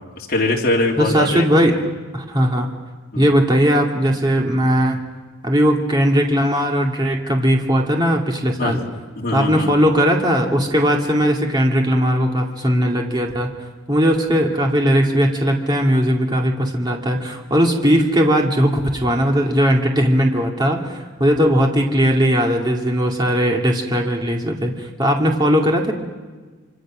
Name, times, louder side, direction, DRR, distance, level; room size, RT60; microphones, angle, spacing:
voice 1, 0.0-1.8 3.1-3.3 8.6-8.8 9.1-9.7, left 2 dB, 50° left, -1 dB, 3.3 m, -22 dB
voice 2, 1.0-1.8 2.1-2.7 3.1-5.0 5.4-8.8 9.3-13.5 13.9-25.9, equal, 20° right, 0 dB, 2.3 m, -18 dB
26.5 x 25.5 x 6.3 m, 1.4 s
head